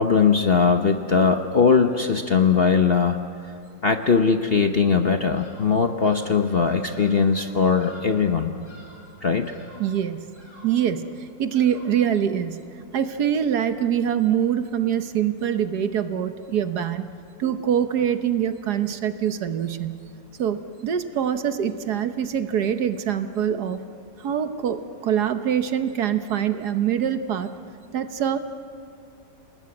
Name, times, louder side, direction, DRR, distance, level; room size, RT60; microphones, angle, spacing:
voice 1, 0.0-3.5 3.8-8.5 9.2-9.5 17.4-17.5, left 5 dB, 45° left, 6 dB, 0.9 m, -20 dB
Bird vocalization bird call bird song, 5.3-5.7 6.0-6.4 6.9-7.3 7.8-8.3 8.6-9.1 9.4-9.9 10.3-10.9 11.5-12.1, left 1 dB, 85° left, 5.9 m, -49 dB
voice 2, 9.8-10.3 10.6-12.6 12.9-17.0 17.4-20.0 20.4-23.8 24.2-27.5 27.9-28.4, right 9 dB, 65° right, 10 dB, 1.5 m, -24 dB
28.5 x 19.0 x 9.7 m, 2.5 s
omnidirectional pair, 2.0 m